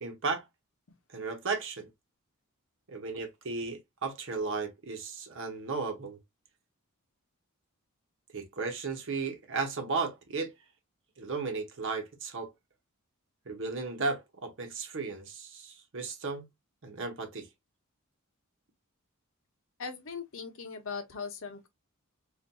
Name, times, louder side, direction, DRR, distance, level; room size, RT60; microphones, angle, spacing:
voice 1, 0.0-0.4 1.1-1.9 2.9-6.2 8.3-10.5 11.2-12.5 13.4-16.5 16.8-17.5, right 4 dB, 55° right, 0.9 m, -35 dB
voice 2, 19.8-21.7, left 5 dB, 60° left, 0.8 m, -39 dB
4.0 x 2.5 x 2.2 m
head